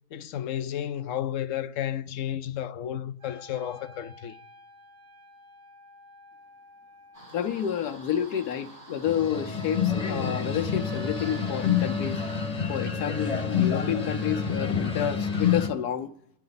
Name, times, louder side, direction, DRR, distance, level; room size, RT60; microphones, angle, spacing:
voice 1, 0.1-4.4, left 10 dB, 65° left, 1.0 m, -32 dB
Wind instrument woodwind instrument, 3.2-9.3, left 2 dB, 90° right, 3.9 m, -53 dB
sound 1, 7.1-12.5, right 2 dB, 60° right, 4.7 m, -48 dB
voice 2, 7.3-12.2 12.7-16.1, left 9 dB, 80° left, 1.4 m, -30 dB
sound 2, 9.0-15.7, left 7 dB, 25° left, 1.1 m, -28 dB
27.0 x 10.5 x 4.0 m
omnidirectional pair, 1.6 m